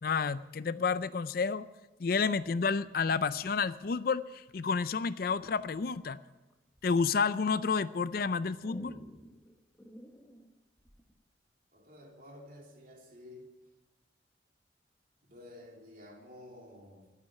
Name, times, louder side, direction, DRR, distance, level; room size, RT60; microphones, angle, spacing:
voice 1, 0.0-1.7 2.0-6.2 6.8-9.0, left 5 dB, 50° left, 0.4 m, -30 dB
sound 1, 3.8-4.3 5.3-5.8 6.3-7.1 7.7-11.1, equal, 5° left, 1.3 m, -52 dB
voice 2, 11.7-13.5 15.3-17.1, left 1 dB, 45° right, 3.0 m, -51 dB
12.0 x 9.3 x 9.9 m
head